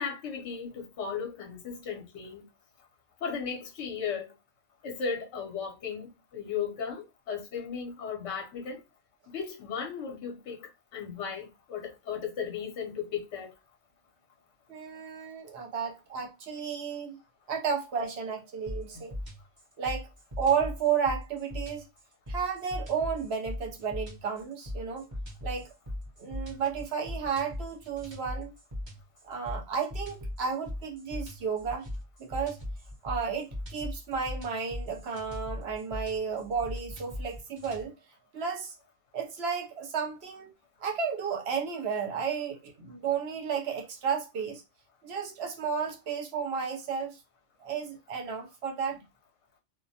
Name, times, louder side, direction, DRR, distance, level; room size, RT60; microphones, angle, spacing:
voice 1, 0.0-2.4 3.2-4.3 4.8-8.8 9.3-13.5 18.9-19.0, left 6 dB, 70° left, 1.0 m, -36 dB
voice 2, 14.7-17.2 17.5-19.1 19.8-20.1 20.4-21.9 22.3-25.0 25.4-25.7 26.2-28.5 29.2-31.9 32.2-32.6 33.0-37.9 38.3-38.7 39.1-40.5 40.8-44.6 45.0-47.2 47.6-49.0, right 6 dB, 60° right, 0.9 m, -32 dB
sound 1, 18.7-37.9, left 1 dB, 25° right, 0.7 m, -39 dB
2.3 x 2.1 x 2.7 m
omnidirectional pair, 1.3 m